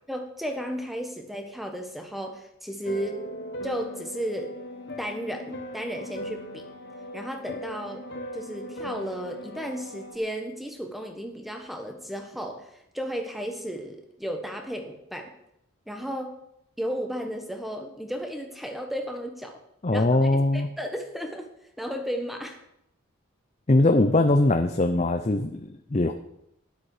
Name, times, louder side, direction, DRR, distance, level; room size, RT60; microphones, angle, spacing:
voice 1, 0.1-3.2 3.6-4.6 5.0-6.7 7.1-8.1 8.3-15.3 15.9-16.4 16.8-19.6 19.9-21.5 21.8-22.6, equal, ahead, 4 dB, 1.3 m, -34 dB
sound 1, 2.8-10.1, left 1 dB, 50° left, 1.4 m, -39 dB
voice 2, 19.8-20.7 23.7-26.1, left 2 dB, 30° left, 6 dB, 0.6 m, -21 dB
12.5 x 10.5 x 4.9 m, 0.79 s
head